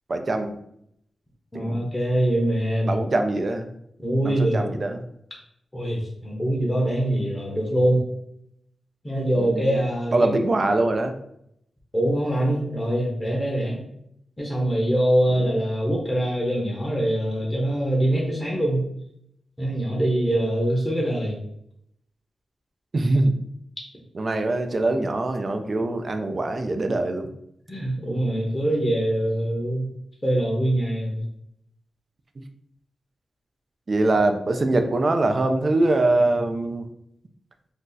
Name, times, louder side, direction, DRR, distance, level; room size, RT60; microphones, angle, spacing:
voice 1, 0.1-0.6 1.5-1.9 2.9-3.7 4.2-5.0 9.3-9.8 10.1-11.1 15.4-15.5 22.9-23.3 24.1-27.3 33.9-36.9, right 2 dB, 45° right, 6 dB, 0.4 m, -23 dB
voice 2, 1.5-3.0 4.0-4.7 5.7-8.0 9.0-10.3 11.9-13.8 14.4-18.8 19.6-21.4 27.7-29.9 30.2-31.2, right 1 dB, 15° left, -3 dB, 0.7 m, -23 dB
2.6 x 2.3 x 3.8 m, 0.75 s
cardioid pair, 85°, 0 cm